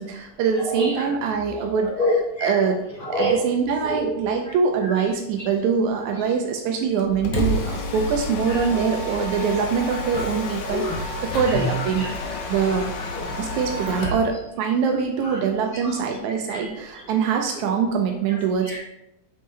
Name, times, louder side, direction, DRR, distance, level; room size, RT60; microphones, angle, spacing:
voice 1, 0.0-1.9 2.4-2.8 3.1-12.9 13.4-18.8, right 6 dB, 80° right, 3 dB, 1.9 m, -24 dB
voice 2, 0.6-1.2 1.7-2.6 3.0-3.3 3.8-4.1 4.9-5.0 8.5-8.8 9.9-10.0 10.7-11.0 11.4-12.1 12.7-13.3 13.7-14.2 14.8-14.9 15.2-15.4 15.8-16.0 16.5-16.7 17.6-17.7 18.3-18.8, equal, 35° left, -6 dB, 1.4 m, -28 dB
Mechanisms, 7.0-14.3, left 1 dB, 80° left, 2.3 m, -29 dB
8.3 x 4.4 x 3.2 m, 0.85 s
omnidirectional pair, 3.4 m